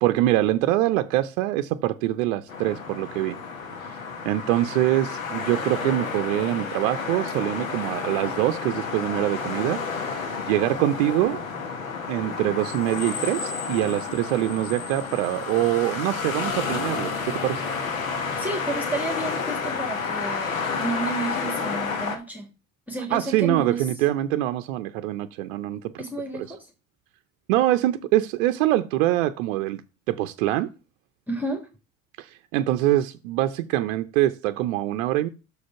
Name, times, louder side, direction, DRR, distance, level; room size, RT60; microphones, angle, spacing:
voice 1, 0.0-3.4 3.9-4.0 4.2-11.4 12.1-17.6 23.1-26.0 27.5-29.8 30.1-30.7 32.2-35.3, right 14 dB, 70° right, 0.6 m, -24 dB
sound 1, 2.5-22.2, left 5 dB, 85° left, 1.3 m, -31 dB
voice 2, 18.4-22.5 22.9-23.9 26.0-26.7 31.3-31.7, right 2 dB, 5° right, 1.7 m, -31 dB
6.5 x 5.0 x 5.7 m
hypercardioid pair, 65°, 39 cm